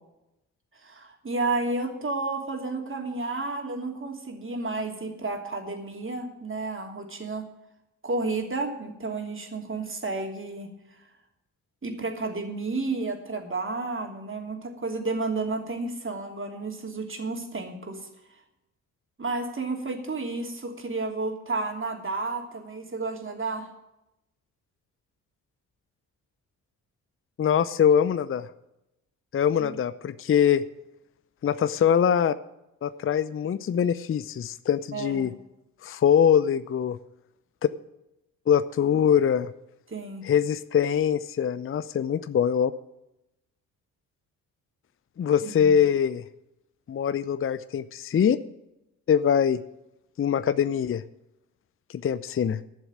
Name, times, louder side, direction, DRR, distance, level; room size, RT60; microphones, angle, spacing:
voice 1, 0.7-7.5 8.0-10.7 11.8-18.1 19.2-23.7 29.6-29.8 34.9-35.3 39.9-40.2 45.4-45.7, right 3 dB, 30° right, 3 dB, 3.0 m, -31 dB
voice 2, 27.4-28.5 29.3-30.6 31.4-32.3 32.8-35.3 35.8-37.0 38.5-39.5 40.2-42.7 45.2-46.2 46.9-48.4 49.1-49.6 50.2-51.0 51.9-52.6, left 8 dB, 30° left, 14 dB, 0.6 m, -23 dB
12.5 x 7.1 x 8.9 m, 0.89 s
hypercardioid pair, 45°, 43 cm